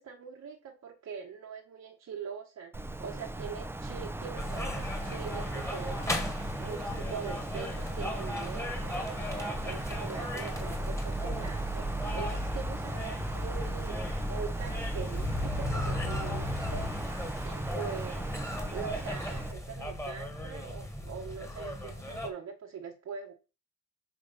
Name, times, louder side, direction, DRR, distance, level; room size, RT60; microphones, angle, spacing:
voice 1, 0.0-9.1 9.6-16.9 17.4-18.3 18.7-23.3, right 7 dB, 60° right, 1.3 m, -43 dB
Wind, 2.7-19.5, right 2 dB, 10° right, 0.6 m, -38 dB
sound 1, 4.4-22.3, left 1 dB, 10° left, 1.6 m, -36 dB
6.2 x 3.3 x 5.5 m
cardioid pair, 90°, 30 cm